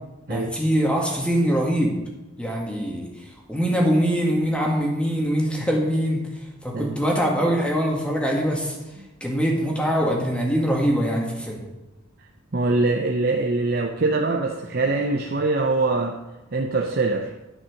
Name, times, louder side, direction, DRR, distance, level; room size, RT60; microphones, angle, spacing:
voice 1, 0.3-1.9 2.4-3.1 3.5-6.2 6.6-8.8 9.2-11.6, equal, 5° left, -1 dB, 1.8 m, -23 dB
voice 2, 12.5-16.2 16.5-17.3, right 3 dB, 45° right, 2 dB, 0.7 m, -23 dB
11.0 x 6.0 x 6.4 m, 1.0 s
head